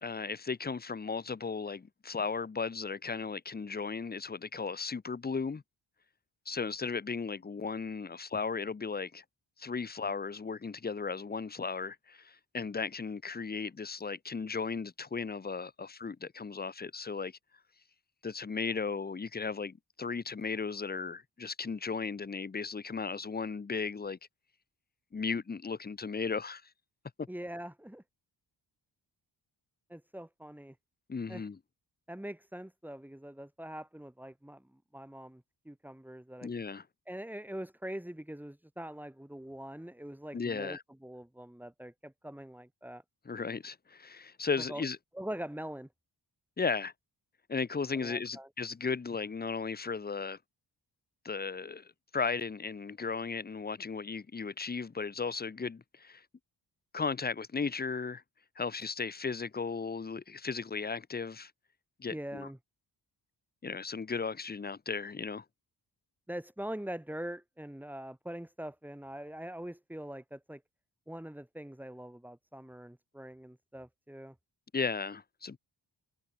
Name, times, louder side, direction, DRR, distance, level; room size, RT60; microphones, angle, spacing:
voice 1, 0.0-5.6 6.5-9.2 9.6-17.3 18.2-24.2 25.1-26.7 27.2-27.3 31.1-31.6 36.4-36.8 40.3-40.8 43.3-45.0 46.6-46.9 47.5-50.4 51.2-56.2 56.9-58.2 58.6-61.5 62.0-62.5 63.6-65.4 74.7-75.6, left 5 dB, 20° left, 0.6 m, -36 dB
voice 2, 27.3-28.0 29.9-30.8 31.3-31.5 32.1-36.5 37.1-43.0 44.7-44.9 45.1-45.9 47.9-48.5 62.1-62.6 66.3-70.6 71.1-74.4, right 1 dB, 5° right, 2.0 m, -43 dB
wide cardioid pair, 110°, 44 cm